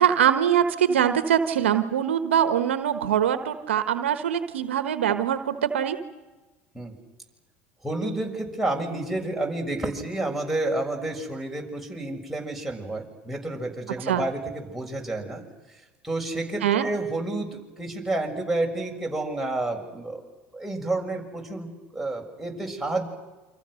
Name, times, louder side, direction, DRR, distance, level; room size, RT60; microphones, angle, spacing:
voice 1, 0.0-6.0 14.1-14.2 16.6-16.8, right 9 dB, 90° right, 9 dB, 1.3 m, -23 dB
voice 2, 7.8-15.4 16.0-20.2 20.5-23.0, right 2 dB, 5° right, 0 dB, 6.9 m, -30 dB
29.0 x 26.0 x 6.5 m, 1.2 s
hypercardioid pair, 75°, 6 cm